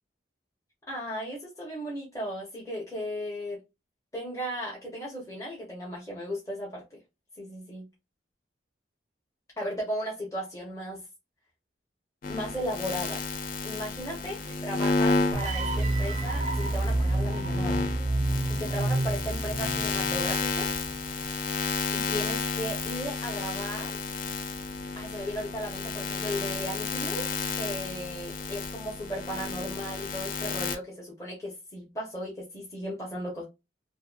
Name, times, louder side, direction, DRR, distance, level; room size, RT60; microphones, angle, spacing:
voice 1, 0.9-3.6 4.1-7.0 7.4-7.9 9.6-11.0 12.3-13.3 13.6-17.8 18.5-20.7 21.9-24.0 25.0-27.3 27.5-33.4, equal, 15° left, 0.7 m, -36 dB
sound 1, 12.2-30.8, left 4 dB, 50° left, 0.4 m, -32 dB
sound 2, 15.3-20.4, right 2 dB, 40° right, 0.4 m, -29 dB
2.6 x 2.5 x 2.4 m
head